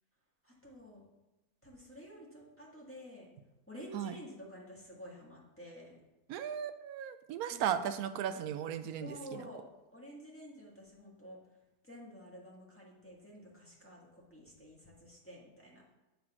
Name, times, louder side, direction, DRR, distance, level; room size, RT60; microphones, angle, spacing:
voice 1, 0.4-1.1 1.6-3.3 3.7-6.0 7.5-7.8 9.0-9.6 9.9-11.4 11.8-15.8, equal, 10° left, -5 dB, 1.7 m, -50 dB
voice 2, 6.3-9.5, right 9 dB, 75° right, 10 dB, 1.0 m, -36 dB
7.7 x 4.0 x 6.0 m, 1.0 s
omnidirectional pair, 1.7 m